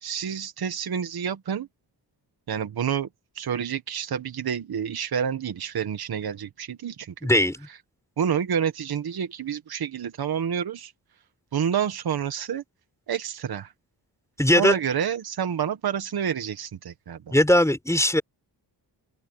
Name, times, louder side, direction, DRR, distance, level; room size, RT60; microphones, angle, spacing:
voice 1, 0.0-1.7 2.5-3.1 3.3-7.3 8.2-10.9 11.5-12.6 13.1-13.7 14.5-17.3, right 8 dB, 65° right, 1.4 m, -28 dB
voice 2, 7.2-7.7 14.4-14.8 17.3-18.2, left 1 dB, 5° left, 3.8 m, -19 dB
open air
wide cardioid pair, 105°, 41 cm